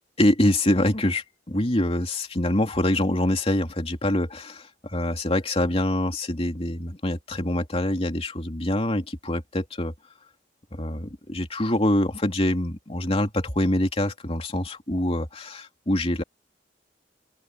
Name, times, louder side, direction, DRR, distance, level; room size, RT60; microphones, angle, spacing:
voice 1, 0.2-9.9 10.7-16.2, left 1 dB, 35° left, 2.9 m, -25 dB
open air
head